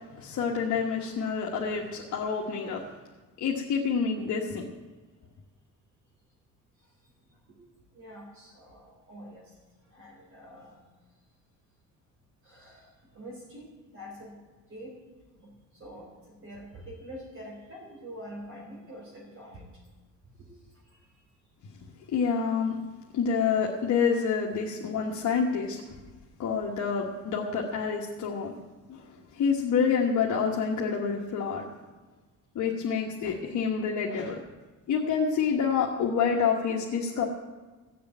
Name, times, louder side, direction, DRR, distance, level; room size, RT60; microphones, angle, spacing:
voice 1, 0.1-2.8 3.4-4.7 22.1-22.8 23.1-25.8 26.4-28.5 28.9-29.1 29.3-31.7 32.5-34.4 34.9-37.3, left 6 dB, 65° left, -1 dB, 1.5 m, -27 dB
voice 2, 7.9-9.4 9.9-10.8 12.4-14.4 14.7-14.9 15.4-15.5 15.8-19.6 20.4-20.5, equal, 40° right, -2 dB, 3.6 m, -45 dB
15.5 x 6.8 x 9.0 m, 1.3 s
cardioid pair, 150°, 32 cm